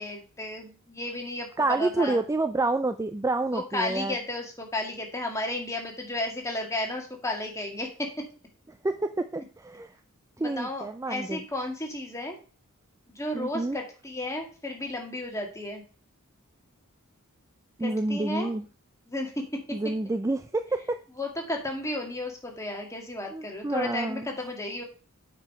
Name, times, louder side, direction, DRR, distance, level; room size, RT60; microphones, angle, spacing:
voice 1, 0.0-2.2 3.5-8.1 10.4-12.4 13.1-15.8 17.8-18.5 19.1-19.4 21.2-24.8, left 1 dB, 15° left, 1 dB, 2.0 m, -33 dB
voice 2, 1.6-4.1 8.8-10.0 10.4-11.4 13.3-13.8 17.8-18.7 19.7-21.0 23.3-24.3, right 2 dB, 15° right, 9 dB, 0.4 m, -28 dB
8.5 x 5.1 x 5.7 m, 0.37 s
head